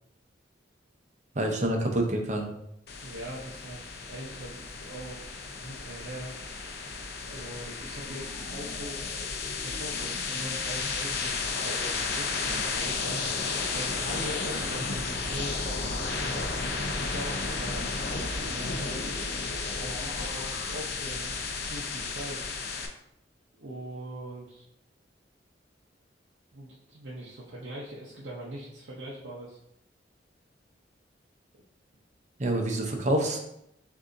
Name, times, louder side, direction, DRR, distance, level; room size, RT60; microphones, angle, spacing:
voice 1, 1.3-2.5 32.4-33.4, right 1 dB, 40° right, 2 dB, 0.7 m, -27 dB
sound 1, 2.9-22.9, left 4 dB, 60° left, 0.6 m, -33 dB
voice 2, 3.0-5.3 5.6-6.3 7.3-9.1 9.4-16.6 17.0-19.0 19.8-21.4 21.7-22.5 23.6-24.7 26.5-29.6, right 1 dB, 90° right, -5 dB, 0.7 m, -42 dB
6.4 x 2.7 x 2.6 m, 0.78 s
head